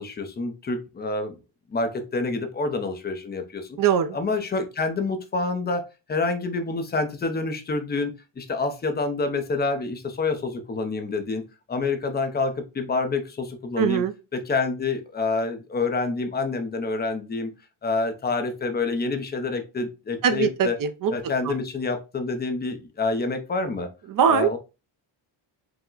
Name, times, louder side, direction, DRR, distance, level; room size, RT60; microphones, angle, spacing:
voice 1, 0.0-1.3 1.7-3.8 4.1-11.4 11.7-14.0 14.3-17.5 17.8-20.8 21.1-23.9 24.3-24.6, left 3 dB, 20° left, 0.5 m, -27 dB
voice 2, 3.8-4.2 13.8-14.1 20.2-21.1 21.4-21.5 24.1-24.5, right 7 dB, 45° right, 0.4 m, -21 dB
4.7 x 2.0 x 3.8 m
cardioid pair, 170°, 49 cm